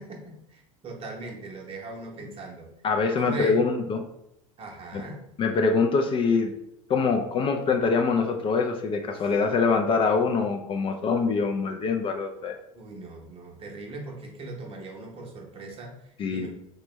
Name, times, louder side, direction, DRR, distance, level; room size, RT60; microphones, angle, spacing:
voice 1, 0.0-2.7 3.1-3.6 4.6-5.2 9.2-9.3 12.7-16.5, right 2 dB, 35° right, 1 dB, 0.8 m, -39 dB
voice 2, 2.8-4.0 4.9-5.0 5.4-6.5 6.9-12.5 16.2-16.5, left 4 dB, 30° left, 4 dB, 0.4 m, -24 dB
3.3 x 2.1 x 3.0 m, 0.80 s
hypercardioid pair, 80°, 17 cm